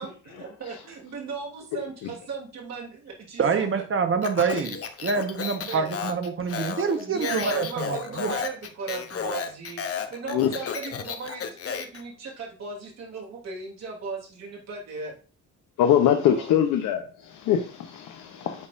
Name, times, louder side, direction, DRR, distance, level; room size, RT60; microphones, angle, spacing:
voice 1, 0.0-3.8 5.6-5.9 6.9-15.1 16.0-16.5 18.3-18.7, right 4 dB, 60° right, 2.8 m, -37 dB
voice 2, 3.4-8.4, right 5 dB, 45° right, 1.2 m, -26 dB
Speech, 4.2-12.0, left 7 dB, 50° left, 0.9 m, -33 dB
voice 3, 15.8-18.7, left 9 dB, 85° left, 0.8 m, -23 dB
8.7 x 4.3 x 2.6 m
cardioid pair, 90°, 30 cm